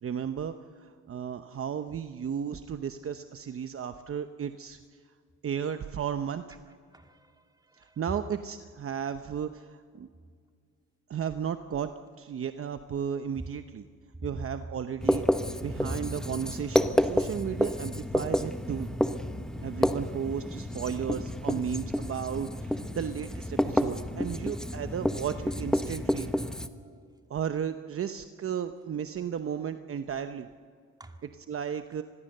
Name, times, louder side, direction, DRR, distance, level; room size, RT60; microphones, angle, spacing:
voice 1, 0.0-4.8 5.4-6.6 7.8-10.1 11.1-11.9 12.2-13.9 14.2-15.2 15.6-18.9 19.6-26.3 27.3-30.5 31.5-32.0, right 8 dB, 45° right, 8 dB, 0.9 m, -34 dB
voice 2, 6.9-8.0 24.5-24.7 26.6-27.0 31.0-31.2, right 2 dB, 15° right, 4 dB, 2.4 m, -55 dB
Writing, 15.0-26.7, equal, ahead, 1.1 m, -30 dB
25.5 x 21.0 x 6.7 m, 2.1 s
cardioid pair, 90°, 30 cm